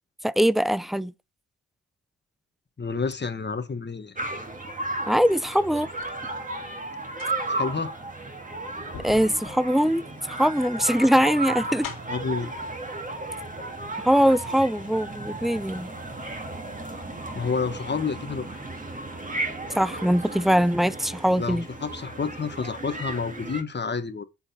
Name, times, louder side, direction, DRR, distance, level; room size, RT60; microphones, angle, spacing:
voice 1, 0.2-1.1 5.1-5.9 9.0-10.0 10.3-11.9 14.0-15.9 19.7-21.6, equal, ahead, 0.3 m, -22 dB
voice 2, 2.8-4.2 7.5-7.9 12.1-12.5 17.3-18.6 21.4-24.2, left 5 dB, 30° left, 1.2 m, -29 dB
sound 1, 4.2-23.6, right 2 dB, 25° right, 1.9 m, -34 dB
sound 2, 6.0-6.2 6.9-12.3 13.3-13.4 13.8-14.6 14.9-15.0, left 7 dB, 85° left, 2.4 m, -44 dB
7.9 x 4.1 x 4.2 m
cardioid pair, 60°, 34 cm